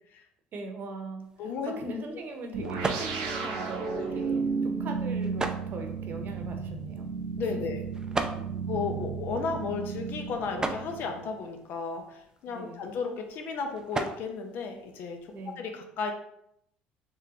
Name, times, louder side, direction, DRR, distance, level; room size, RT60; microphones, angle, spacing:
voice 1, 0.5-7.1 7.5-7.6 8.3-8.6 12.5-12.9 15.3-15.7, right 2 dB, 50° right, 4 dB, 0.8 m, -40 dB
sound 1, 1.2-15.5, right 3 dB, 20° right, 0.4 m, -40 dB
voice 2, 1.4-1.8 4.0-4.2 7.4-7.8 8.7-15.2 15.6-16.1, left 5 dB, 60° left, 4 dB, 0.8 m, -34 dB
sound 2, 2.5-11.4, right 5 dB, 90° right, 0.7 m, -33 dB
3.7 x 3.5 x 2.9 m, 0.75 s
supercardioid pair, 85°, 4 cm